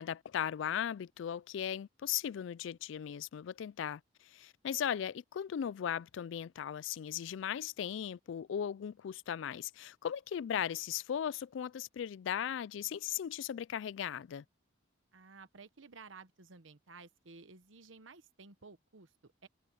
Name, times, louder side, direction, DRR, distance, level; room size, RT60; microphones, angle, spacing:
voice 1, 0.0-14.4, left 9 dB, 75° left, 0.3 m, -37 dB
voice 2, 15.1-19.5, right 4 dB, 85° right, 1.1 m, -55 dB
head